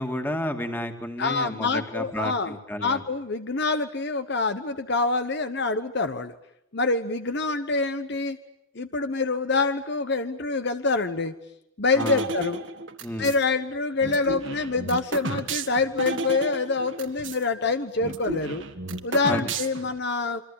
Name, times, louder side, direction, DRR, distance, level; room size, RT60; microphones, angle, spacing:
voice 1, 0.0-3.0 12.0-12.2 13.0-13.3 19.3-19.4, left 1 dB, 10° left, 5 dB, 2.2 m, -31 dB
voice 2, 1.2-6.3 6.7-8.4 8.7-11.3 11.8-12.6 13.2-18.6 19.0-20.4, left 3 dB, 50° left, 9 dB, 1.1 m, -26 dB
sound 1, 12.0-13.4 14.0-17.4 17.7-17.8 18.0-20.0, right 3 dB, 60° right, 1.9 m, -32 dB
27.0 x 24.5 x 8.6 m, 0.79 s
head